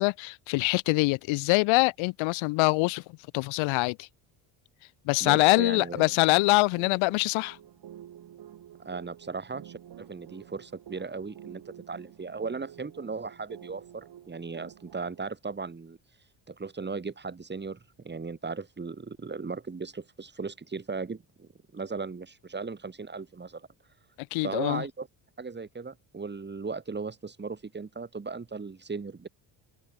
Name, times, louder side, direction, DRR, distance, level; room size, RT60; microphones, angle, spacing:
voice 1, 0.0-4.1 5.0-7.6 24.2-24.8, left 25 dB, 85° left, 1.1 m, -24 dB
voice 2, 5.2-6.1 8.8-16.0 16.5-17.8 18.0-23.7 24.4-25.1 25.4-29.3, right 4 dB, 20° right, 3.4 m, -37 dB
sound 1, 5.9-15.2, right 10 dB, 55° right, 6.4 m, -49 dB
cardioid pair, 100°, 46 cm